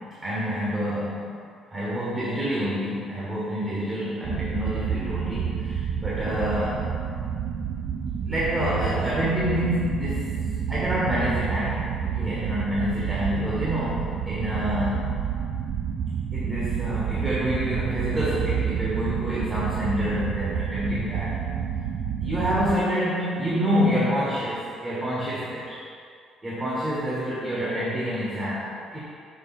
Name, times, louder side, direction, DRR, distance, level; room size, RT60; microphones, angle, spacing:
voice 1, 0.0-1.3 1.7-6.9 8.2-10.3 10.7-15.2 16.3-21.4 22.2-25.8 26.4-29.0, equal, 25° right, -8 dB, 1.3 m, -27 dB
sound 1, 4.2-22.8, right 7 dB, 50° right, 0.4 m, -29 dB
6.4 x 4.1 x 4.1 m, 2.2 s
cardioid pair, 120°, 0 cm